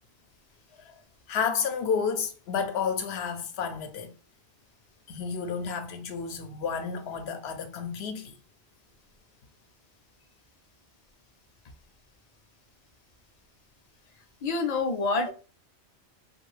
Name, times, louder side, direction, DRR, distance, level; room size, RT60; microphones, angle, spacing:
voice 1, 1.3-4.1 5.1-8.3, left 6 dB, 70° left, 0.8 m, -31 dB
voice 2, 14.4-15.3, left 3 dB, 55° left, 0.4 m, -27 dB
2.7 x 2.4 x 3.2 m
omnidirectional pair, 1.1 m